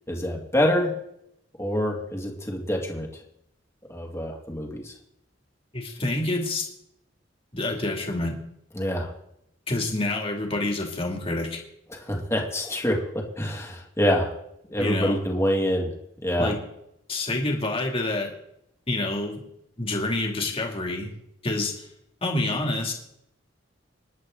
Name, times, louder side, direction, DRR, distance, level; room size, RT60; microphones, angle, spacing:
voice 1, 0.1-0.9 1.6-3.1 3.9-4.9 8.8-9.1 11.9-14.3 14.7-15.9 16.2-16.5, equal, 15° left, 0 dB, 2.3 m, -26 dB
voice 2, 5.7-6.7 7.5-8.4 9.7-11.6 14.8-15.2 16.4-16.6 17.1-18.3 18.9-19.4 19.8-21.1 21.4-21.9 22.2-22.9, left 2 dB, 30° left, 1 dB, 2.7 m, -27 dB
26.5 x 11.0 x 3.9 m, 0.79 s
head